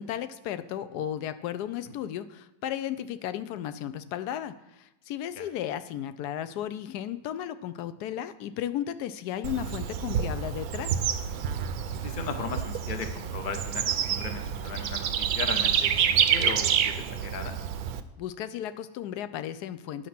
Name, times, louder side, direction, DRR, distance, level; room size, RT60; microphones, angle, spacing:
voice 1, 0.0-10.9 18.2-20.1, left 10 dB, 80° left, 13 dB, 1.1 m, -34 dB
Bird / Insect, 9.4-18.0, right 8 dB, 75° right, 1.0 m, -28 dB
voice 2, 12.0-17.6, left 5 dB, 50° left, 6 dB, 0.6 m, -37 dB
9.4 x 6.6 x 5.8 m, 0.96 s
omnidirectional pair, 1.7 m